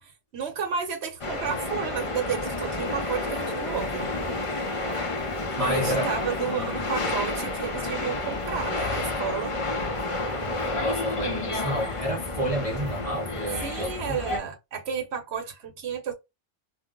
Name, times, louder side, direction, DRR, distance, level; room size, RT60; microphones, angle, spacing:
voice 1, 0.0-4.1 5.6-9.5 13.6-16.1, right 6 dB, 65° right, 1.0 m, -32 dB
sound 1, 1.2-14.4, left 2 dB, 40° left, 0.4 m, -30 dB
sound 2, 3.0-13.0, left 3 dB, 65° left, 0.8 m, -45 dB
voice 2, 5.6-6.1 6.5-6.8 10.8-14.4, equal, 40° right, 0.6 m, -30 dB
2.5 x 2.0 x 3.6 m
omnidirectional pair, 1.3 m